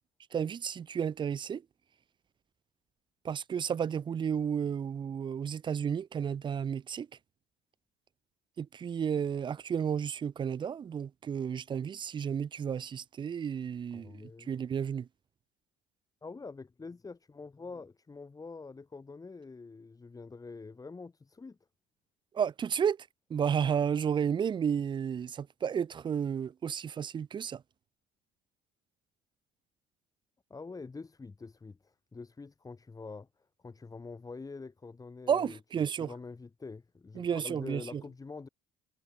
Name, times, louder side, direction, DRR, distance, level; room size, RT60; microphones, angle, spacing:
voice 1, 0.3-1.6 3.2-7.1 8.6-15.1 22.3-27.6 35.3-36.1 37.2-38.0, right 7 dB, 25° right, 0.4 m, -32 dB
voice 2, 13.9-14.5 16.2-21.6 30.5-33.3 33.6-35.6 36.0-38.5, left 4 dB, 20° left, 2.1 m, -45 dB
cardioid pair, 100°, 17 cm